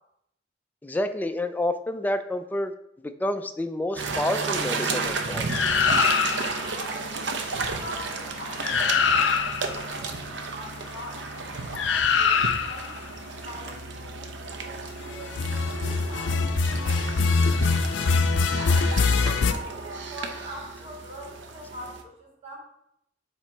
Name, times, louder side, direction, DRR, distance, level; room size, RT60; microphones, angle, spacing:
voice 1, 0.8-2.7 3.2-5.5, left 1 dB, 10° left, 8 dB, 0.3 m, -28 dB
sound 1, 4.0-22.0, right 4 dB, 75° right, 0.7 m, -33 dB
sound 2, 5.5-6.6 8.3-8.4 8.6-9.8 11.8-12.9 15.3-19.5, left 5 dB, 80° left, 0.4 m, -23 dB
voice 2, 6.6-11.3 11.7-13.0 13.4-18.0 18.5-22.6, equal, 35° right, -4 dB, 1.9 m, -43 dB
7.3 x 2.9 x 4.4 m, 0.78 s
head